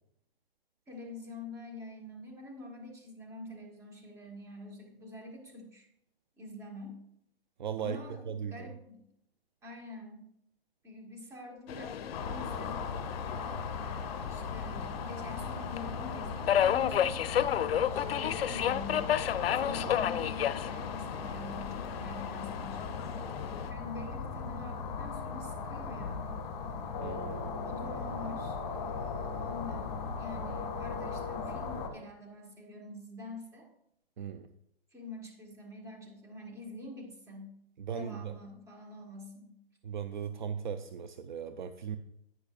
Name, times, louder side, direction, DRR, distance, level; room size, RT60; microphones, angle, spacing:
voice 1, 0.9-5.9 6.4-7.0 7.8-9.0 9.6-10.2 10.8-12.9 13.8-19.1 19.5-23.0 23.7-26.3 27.6-33.7 34.9-37.5 37.9-39.5, left 2 dB, 10° right, 1 dB, 1.5 m, -46 dB
voice 2, 7.6-8.7 19.6-20.0 27.0-27.6 34.2-34.5 37.8-38.4 39.8-42.0, right 7 dB, 50° right, 9 dB, 0.6 m, -38 dB
Subway metro underground, 11.7-23.7, left 10 dB, 70° left, 0.5 m, -33 dB
sound 1, 12.1-31.9, left 5 dB, 40° left, 1.8 m, -38 dB
10.5 x 9.7 x 2.4 m, 0.76 s
hypercardioid pair, 150°, 31 cm